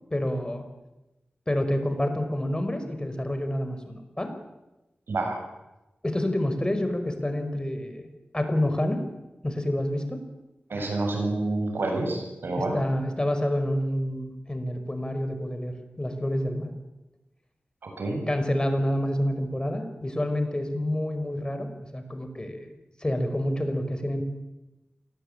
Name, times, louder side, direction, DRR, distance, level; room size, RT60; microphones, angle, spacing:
voice 1, 0.1-0.6 1.5-4.3 6.0-8.1 8.3-9.0 9.4-10.2 12.6-16.7 18.3-22.7 23.0-24.2, left 1 dB, 25° left, 7 dB, 5.1 m, -28 dB
voice 2, 5.1-5.5 10.7-12.8 17.8-18.3, right 2 dB, 90° right, 3 dB, 7.6 m, -28 dB
27.5 x 19.5 x 9.0 m, 1.0 s
cardioid pair, 55°, 4 cm